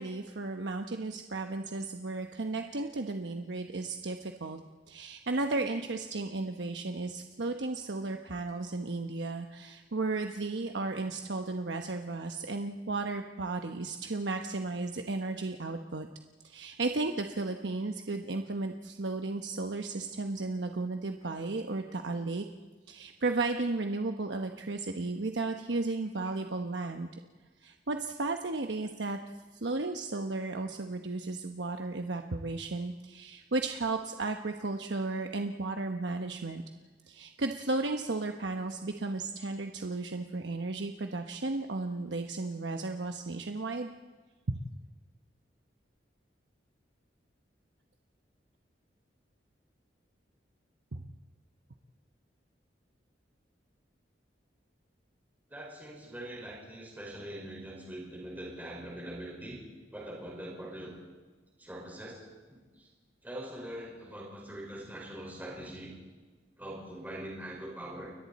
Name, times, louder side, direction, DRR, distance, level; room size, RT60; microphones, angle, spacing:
voice 1, 0.0-4.6 4.9-16.1 16.4-22.4 22.9-27.1 27.6-29.2 29.6-36.6 37.1-43.9 44.5-44.6 50.9-51.0, right 3 dB, 80° right, 5 dB, 1.0 m, -34 dB
voice 2, 55.5-59.6 59.9-60.9 61.6-62.2 62.5-62.9 63.2-65.9 66.6-68.1, right 1 dB, 10° right, -4 dB, 5.0 m, -42 dB
30.0 x 22.0 x 4.2 m, 1.4 s
head